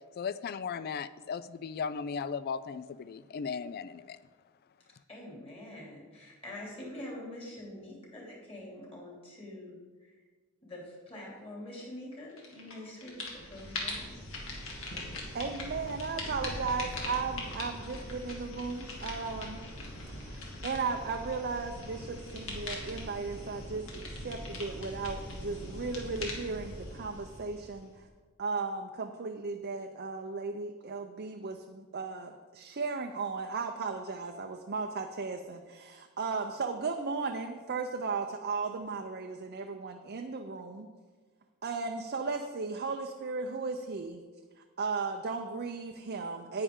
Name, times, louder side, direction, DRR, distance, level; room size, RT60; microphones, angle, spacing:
voice 1, 0.2-4.2, left 6 dB, 45° left, 16 dB, 0.3 m, -36 dB
voice 2, 5.1-10.1 10.6-14.3, left 1 dB, 25° left, -3 dB, 2.9 m, -45 dB
sound 1, 12.4-12.7 13.0-28.0, left 1 dB, 65° left, 2.1 m, -41 dB
voice 3, 15.3-19.6 20.2-28.1 28.4-40.9 41.6-44.2 44.8-46.6, right 4 dB, 50° right, 4 dB, 0.6 m, -36 dB
10.0 x 9.7 x 3.7 m, 1.4 s
head